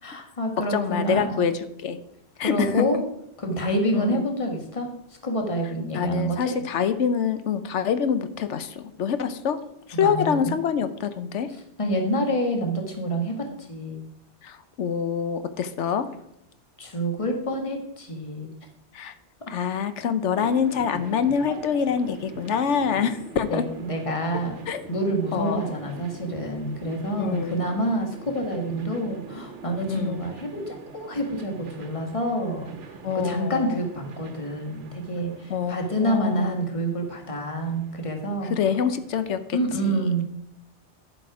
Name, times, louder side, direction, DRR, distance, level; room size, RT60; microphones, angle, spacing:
voice 1, 0.0-1.4 2.4-3.0 3.4-4.9 5.2-6.6 10.0-10.5 11.8-14.1 16.8-18.5 23.0-23.1 23.5-24.6 24.9-38.5 39.5-40.2, right 1 dB, 30° left, 2 dB, 1.6 m, -27 dB
voice 2, 0.7-2.0 2.4-3.0 3.9-4.2 5.9-9.6 9.9-11.5 14.4-16.0 18.9-19.1 19.5-23.6 24.7-24.8 25.3-25.9 27.2-27.6 29.9-30.2 33.0-33.8 35.5-36.6 38.5-40.1, left 7 dB, 90° left, 11 dB, 1.1 m, -26 dB
sound 1, 20.4-39.6, right 5 dB, 85° right, 1.2 m, -44 dB
10.5 x 7.6 x 4.9 m, 0.79 s
omnidirectional pair, 1.2 m